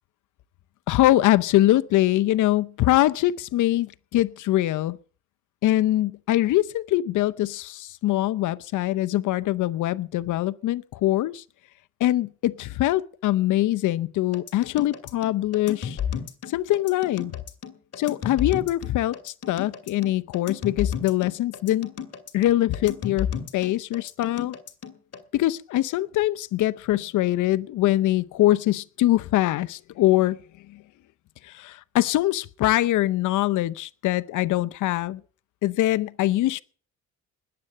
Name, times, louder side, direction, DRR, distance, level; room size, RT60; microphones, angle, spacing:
voice 1, 0.9-5.0 5.6-11.4 12.0-16.0 16.5-17.3 18.0-21.9 22.3-24.6 25.3-30.4 30.7-30.8 31.4-35.2 35.6-36.6, left 15 dB, 80° left, 0.7 m, -23 dB
sound 1, 14.3-25.2, left 8 dB, 55° left, 2.4 m, -32 dB
20.0 x 7.9 x 8.5 m
cardioid pair, 90°, 30 cm